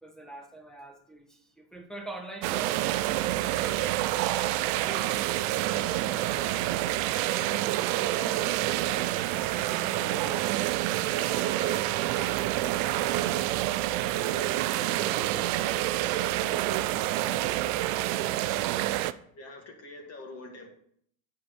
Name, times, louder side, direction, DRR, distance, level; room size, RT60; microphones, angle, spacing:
voice 1, 0.0-3.0 3.5-3.9 5.0-6.4, right 2 dB, ahead, 4 dB, 1.3 m, -45 dB
sound 1, 2.4-19.1, right 15 dB, 60° right, 0.6 m, -28 dB
voice 2, 3.6-4.1 4.4-7.7 8.0-10.5 11.0-13.4 14.0-17.5 18.4-18.7 19.4-20.7, left 2 dB, 35° left, 4 dB, 2.0 m, -45 dB
8.5 x 4.8 x 6.1 m, 0.65 s
supercardioid pair, 115°, 45 cm